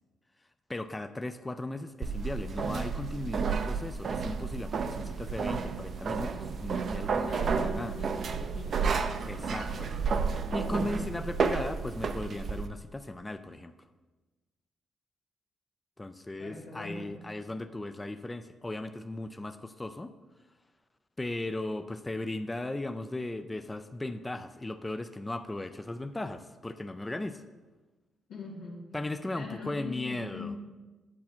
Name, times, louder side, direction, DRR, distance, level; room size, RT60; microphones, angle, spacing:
voice 1, 0.7-8.0 9.2-9.9 10.5-13.7 16.0-20.1 21.2-27.4 28.9-30.5, left 2 dB, 15° left, 9 dB, 0.4 m, -37 dB
sound 1, 2.0-12.7, right 5 dB, 55° right, 0.5 m, -31 dB
voice 2, 7.2-8.9 9.3-10.2 10.7-11.1 16.4-17.1 28.3-28.9 29.3-30.6, left 3 dB, 85° left, -7 dB, 1.8 m, -42 dB
8.4 x 7.5 x 4.4 m, 1.2 s
cardioid pair, 90°, 0 cm